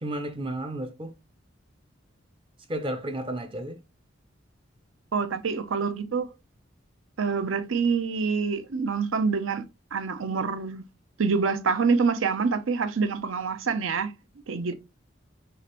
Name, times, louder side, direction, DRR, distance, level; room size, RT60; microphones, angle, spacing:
voice 1, 0.0-1.1 2.7-3.8, right 1 dB, 25° right, 0.5 m, -32 dB
voice 2, 5.1-6.3 7.2-9.6 9.9-10.8 11.2-14.1 14.5-14.7, right 5 dB, 80° right, 0.6 m, -26 dB
6.4 x 2.5 x 2.9 m
head